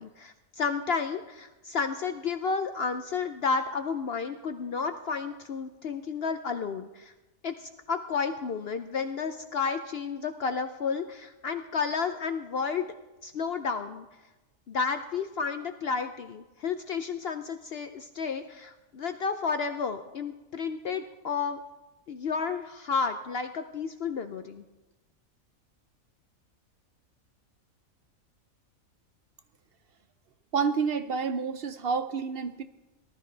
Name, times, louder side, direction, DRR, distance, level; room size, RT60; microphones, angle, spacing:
voice 1, 0.0-7.1 7.4-12.9 13.2-14.1 14.7-21.6 22.1-24.6, left 5 dB, 60° left, 8 dB, 0.7 m, -31 dB
voice 2, 30.5-32.6, right 5 dB, 60° right, 11 dB, 0.7 m, -29 dB
18.5 x 12.5 x 3.3 m, 1.1 s
omnidirectional pair, 1.5 m